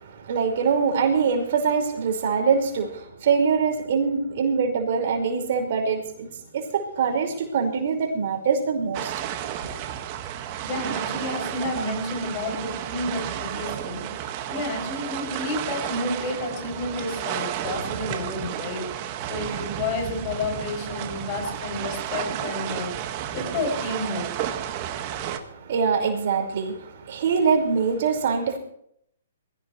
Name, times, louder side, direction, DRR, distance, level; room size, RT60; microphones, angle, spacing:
voice 1, 0.0-6.3 6.5-9.1 9.6-9.7 25.3-28.6, right 5 dB, 55° right, 3 dB, 5.3 m, -24 dB
sound 1, 8.9-25.4, right 10 dB, 35° right, 1.8 m, -32 dB
voice 2, 10.6-24.4, left 2 dB, 35° left, 3 dB, 7.1 m, -31 dB
22.5 x 16.5 x 3.3 m, 0.69 s
hypercardioid pair, 140°, 0 cm